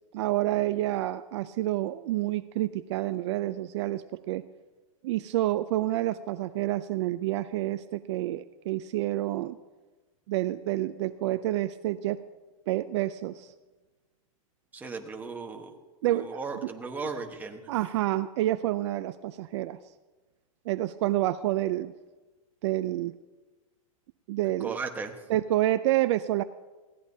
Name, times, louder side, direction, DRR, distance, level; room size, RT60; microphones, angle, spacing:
voice 1, 0.1-4.4 5.0-9.6 10.3-12.2 12.7-13.5 16.0-16.5 17.7-19.8 20.7-21.9 22.6-23.1 24.3-24.8 25.3-26.4, right 15 dB, 55° right, 13 dB, 0.5 m, -28 dB
voice 2, 14.7-15.8 16.0-17.7 24.6-25.1, right 4 dB, 10° right, 3 dB, 1.2 m, -36 dB
20.5 x 16.0 x 2.8 m, 1.2 s
supercardioid pair, 145°, 18 cm